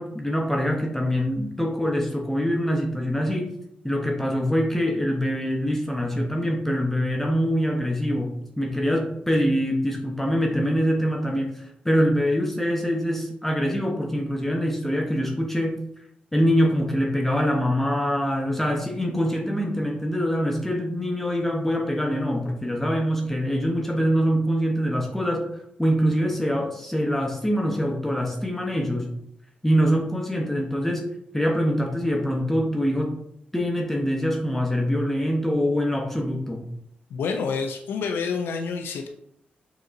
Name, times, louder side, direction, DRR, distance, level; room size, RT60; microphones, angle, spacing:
voice 1, 0.0-3.5 3.8-15.8 16.3-29.1 29.6-31.0 31.3-33.1 33.5-36.7, equal, 10° left, 1 dB, 0.7 m, -24 dB
voice 2, 37.1-39.1, left 5 dB, 90° left, 3 dB, 0.4 m, -28 dB
5.2 x 2.9 x 2.5 m, 0.75 s
cardioid pair, 70°, 4 cm